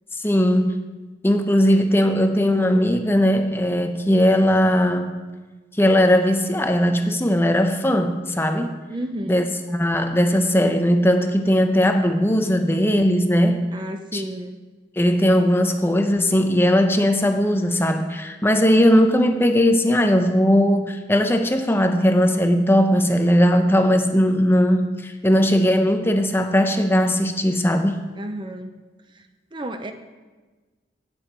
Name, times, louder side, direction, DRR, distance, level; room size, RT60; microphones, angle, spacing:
voice 1, 0.2-0.8 1.2-5.1 5.8-8.7 9.3-13.6 14.1-14.2 15.0-28.0, equal, 10° left, 6 dB, 0.7 m, -18 dB
voice 2, 8.9-9.5 13.7-14.5 28.2-28.7 29.5-29.9, right 1 dB, 25° right, 7 dB, 0.5 m, -31 dB
18.0 x 7.2 x 4.5 m, 1.3 s
head